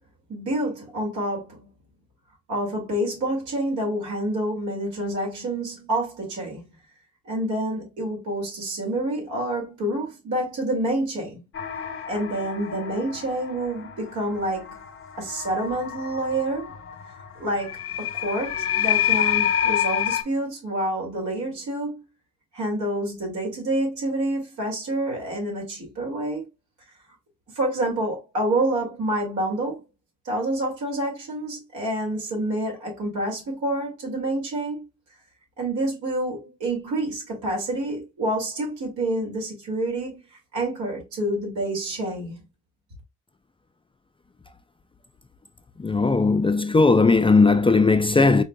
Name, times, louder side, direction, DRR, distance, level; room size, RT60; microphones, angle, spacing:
voice 1, 0.3-1.7 2.5-6.6 7.3-11.4 12.1-14.7 15.2-16.7 17.4-22.0 22.5-26.4 27.6-29.8 30.2-34.8 35.6-40.2 40.5-42.4, right 1 dB, 75° right, 2.4 m, -28 dB
sound 1, 11.5-20.2, left 10 dB, 45° left, 0.9 m, -28 dB
voice 2, 45.8-48.4, left 3 dB, 20° left, 0.4 m, -18 dB
4.6 x 3.4 x 2.2 m
supercardioid pair, 55°, 29 cm